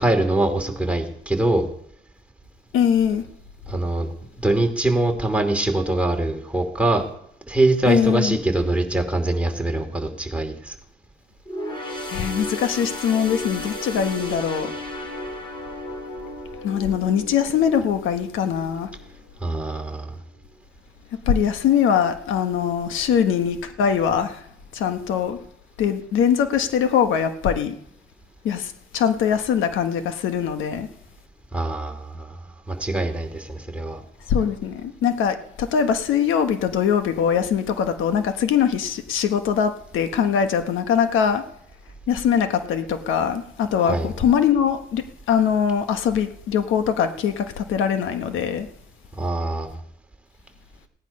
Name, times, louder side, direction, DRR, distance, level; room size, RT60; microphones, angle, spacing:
voice 1, 0.0-1.7 3.7-4.1 4.4-7.1 7.5-10.7 19.4-20.2 31.5-32.4 32.7-34.0 43.9-44.1 49.2-49.7, right 2 dB, 5° right, 3 dB, 2.7 m, -23 dB
voice 2, 2.7-3.2 7.8-8.4 12.1-14.7 16.6-18.9 21.3-24.4 24.7-25.4 25.8-27.7 28.4-30.9 34.3-41.4 42.1-48.7, left 8 dB, 85° left, 8 dB, 1.3 m, -22 dB
sound 1, 11.5-19.1 19.6-19.7 20.6-20.7, left 1 dB, 25° left, 4.3 m, -34 dB
16.5 x 10.5 x 5.4 m, 0.70 s
cardioid pair, 90°, 20 cm